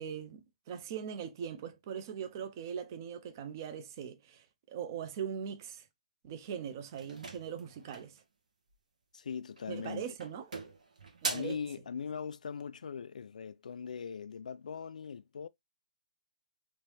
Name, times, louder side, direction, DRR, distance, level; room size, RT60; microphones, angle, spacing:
voice 1, 0.0-5.8 6.2-8.2 9.7-10.5 11.2-11.6, right 8 dB, 30° right, 0.5 m, -41 dB
sound 1, 7.0-8.2 9.5-9.9 10.2-11.6, right 3 dB, 85° right, 1.3 m, -40 dB
voice 2, 9.1-10.1 11.3-15.5, left 6 dB, 80° left, 0.3 m, -40 dB
3.2 x 3.0 x 3.2 m
hypercardioid pair, 170°, 4 cm